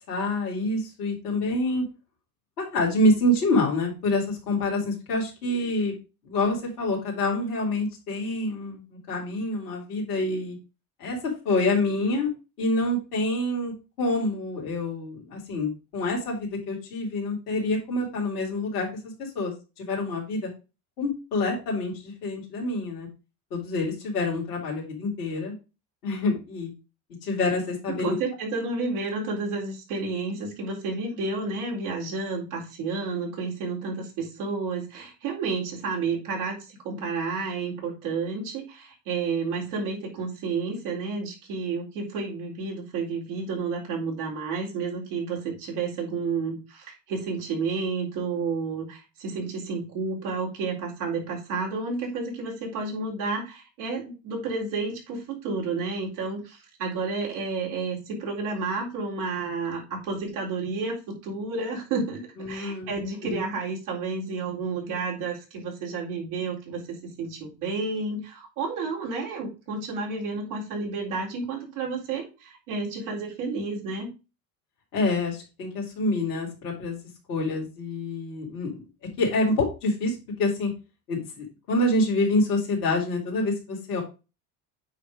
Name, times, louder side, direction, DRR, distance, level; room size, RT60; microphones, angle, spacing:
voice 1, 0.1-1.8 2.6-5.9 6.2-10.6 11.0-11.2 11.4-12.3 12.6-13.7 14.0-18.9 19.2-20.5 21.0-23.1 23.5-25.5 26.0-26.7 27.2-28.1 62.4-63.4 74.9-77.0 77.3-78.9 79.2-80.7 81.1-84.0, left 2 dB, 90° left, -2 dB, 3.3 m, -27 dB
voice 2, 28.0-62.2 62.5-74.1, right 4 dB, 75° right, -2 dB, 4.0 m, -31 dB
9.1 x 3.4 x 4.9 m, 0.29 s
hypercardioid pair, 75°, 45 cm